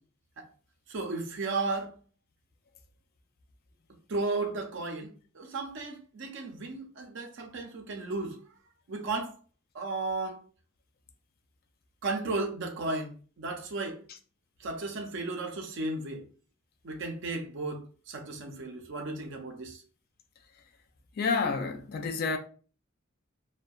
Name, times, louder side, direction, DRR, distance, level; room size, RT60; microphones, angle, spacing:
voice 1, 0.9-1.9 4.1-8.4 8.9-9.3 9.7-10.4 12.0-14.0 14.6-16.2 16.8-19.8, right 3 dB, 60° right, 0.5 m, -34 dB
voice 2, 21.2-22.4, left 4 dB, 45° left, 0.3 m, -29 dB
2.6 x 2.1 x 2.3 m
head